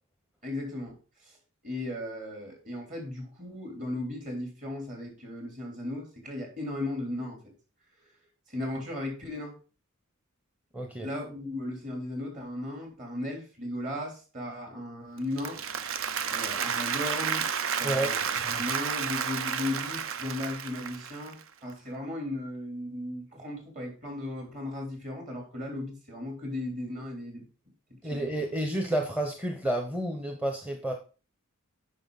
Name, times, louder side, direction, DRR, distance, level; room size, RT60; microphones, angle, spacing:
voice 1, 0.4-1.4 1.6-7.4 8.5-9.6 11.0-15.6 16.3-17.5 17.8-18.3 18.6-27.4 28.0-28.3, left 1 dB, 40° right, 1 dB, 3.5 m, -36 dB
voice 2, 10.7-11.1 17.8-18.2 18.4-18.6 28.0-30.9, right 1 dB, 5° right, 3 dB, 0.8 m, -30 dB
Applause, 15.2-21.4, right 7 dB, 65° right, 0.6 m, -31 dB
8.9 x 5.8 x 4.0 m, 0.35 s
head